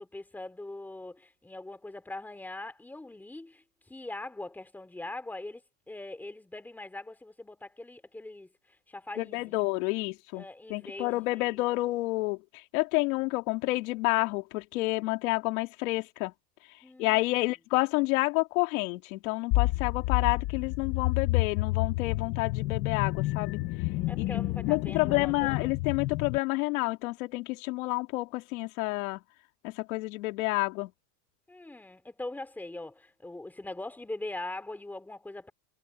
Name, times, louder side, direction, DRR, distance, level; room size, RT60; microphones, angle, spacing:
voice 1, 0.0-8.5 8.9-9.7 10.3-11.6 16.8-17.4 24.1-25.8 31.5-35.5, left 2 dB, 5° left, 2.6 m, -42 dB
voice 2, 9.2-12.4 12.7-16.3 17.0-23.6 24.2-24.3 24.7-29.2 29.6-30.9, left 22 dB, 65° left, 2.7 m, -29 dB
sound 1, 19.5-26.4, left 18 dB, 25° left, 0.3 m, -29 dB
supercardioid pair, 160°, 45 cm